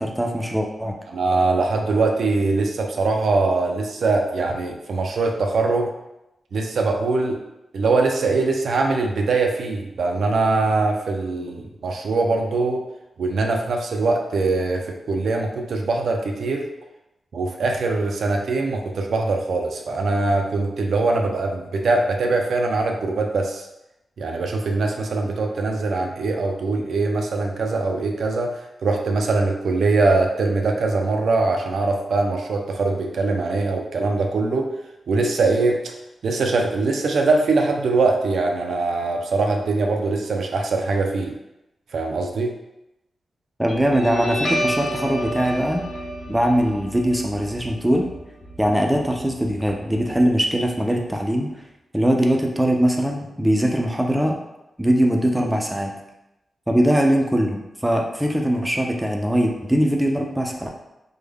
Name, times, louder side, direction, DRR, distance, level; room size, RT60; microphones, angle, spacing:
voice 1, 0.0-0.9 43.6-45.8 46.3-48.1 48.6-51.5 51.9-54.4 54.8-55.9 56.7-60.7, equal, 5° right, 1 dB, 0.4 m, -21 dB
voice 2, 1.1-5.9 6.5-7.4 7.7-12.8 13.2-16.7 17.3-23.7 24.2-34.7 35.1-35.9 36.2-41.3 41.9-42.5, right 3 dB, 75° right, 2 dB, 0.4 m, -22 dB
Guitar, 43.7-50.7, equal, 40° left, 0.6 m, -30 dB
3.4 x 2.1 x 3.4 m, 0.91 s
wide cardioid pair, 145°, 0 cm